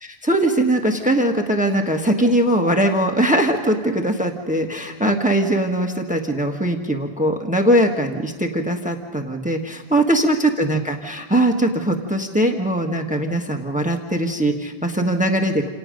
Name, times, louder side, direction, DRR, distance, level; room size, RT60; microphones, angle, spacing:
voice 1, 0.0-15.7, right 1 dB, 5° right, 3 dB, 1.3 m, -20 dB
28.5 x 18.0 x 5.2 m, 1.5 s
omnidirectional pair, 1.1 m